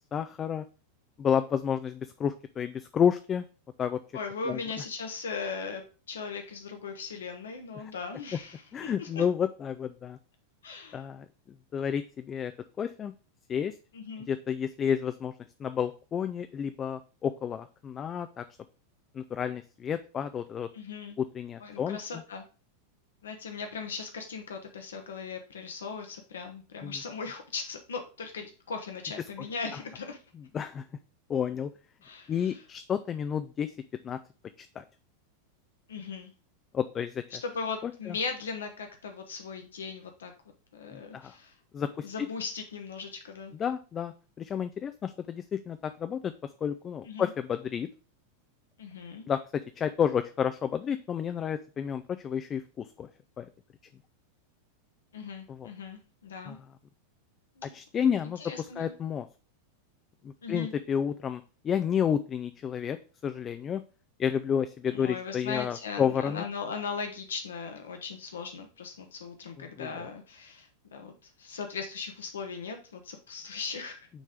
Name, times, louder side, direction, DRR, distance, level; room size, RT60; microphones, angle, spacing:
voice 1, 0.1-0.6 1.2-3.4 3.8-4.0 4.5-4.6 7.8-7.9 8.7-10.2 10.9-11.3 11.7-12.5 12.8-13.1 13.5-13.8 14.3-15.3 15.6-18.4 19.1-20.7 21.2-22.0 26.8-26.9 30.5-30.8 31.3-31.7 32.3-33.7 34.0-34.2 34.6-34.8 36.7-37.2 37.8-38.2 40.9-41.3 41.7-42.1 43.6-46.3 46.6-47.9 49.3-49.4 49.8-53.1 53.4-53.5 55.5-55.7 56.5-56.6 57.7-59.3 60.2-63.0 63.2-63.8 64.2-66.4 69.6-70.1, left 8 dB, 25° left, 10 dB, 0.4 m, -30 dB
voice 2, 4.1-9.2 10.6-11.0 13.9-14.3 20.7-21.2 21.6-22.4 23.2-30.2 32.0-32.6 35.9-36.3 37.4-40.3 40.7-41.5 42.0-43.5 47.0-47.3 48.8-49.3 55.1-56.6 57.6-57.7 58.4-58.9 60.4-60.7 64.9-74.1, left 5 dB, 65° left, 5 dB, 0.9 m, -38 dB
6.2 x 3.3 x 5.0 m, 0.35 s
figure-of-eight pair, 90°, 0 cm